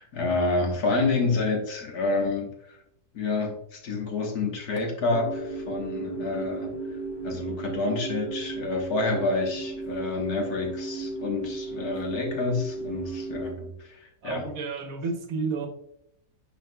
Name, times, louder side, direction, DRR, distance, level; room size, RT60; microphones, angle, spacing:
voice 1, 0.0-2.8 3.1-7.0 7.2-14.5, left 3 dB, 80° left, 1 dB, 1.8 m, -28 dB
sound 1, 5.1-13.5, right 2 dB, 50° left, 2.8 m, -34 dB
voice 2, 14.2-15.7, right 4 dB, 65° right, 5 dB, 1.2 m, -31 dB
9.3 x 4.5 x 2.2 m, 0.76 s
omnidirectional pair, 1.6 m